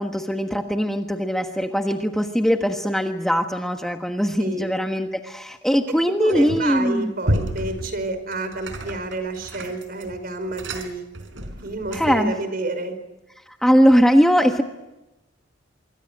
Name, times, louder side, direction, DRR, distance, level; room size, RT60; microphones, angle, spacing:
voice 1, 0.0-7.1 11.9-12.3 13.6-14.6, equal, ahead, 4 dB, 1.4 m, -20 dB
voice 2, 4.4-4.7 6.2-11.1 11.6-12.9, right 2 dB, 50° right, 10 dB, 5.0 m, -29 dB
sound 1, 6.3-6.8 7.2-12.3, right 1 dB, 75° right, 4.2 m, -31 dB
25.5 x 24.5 x 6.3 m, 0.98 s
head